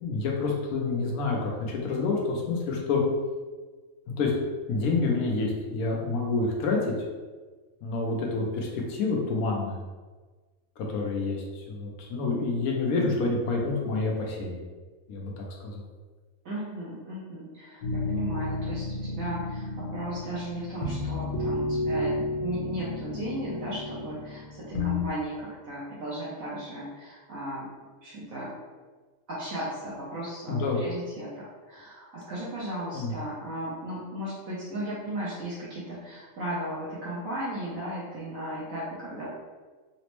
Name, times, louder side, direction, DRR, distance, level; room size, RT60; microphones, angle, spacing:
voice 1, 0.0-3.0 4.2-4.3 4.7-6.8 7.8-9.8 10.8-14.6 15.1-15.8 30.5-30.8 32.9-33.1, left 3 dB, 85° left, -1 dB, 1.1 m, -28 dB
voice 2, 12.9-13.3 16.4-27.7 28.0-28.5 29.3-39.3, right 1 dB, 75° right, -8 dB, 1.1 m, -36 dB
sound 1, 17.8-25.0, left 2 dB, 55° left, 0.5 m, -32 dB
4.1 x 2.0 x 2.9 m, 1.4 s
omnidirectional pair, 1.5 m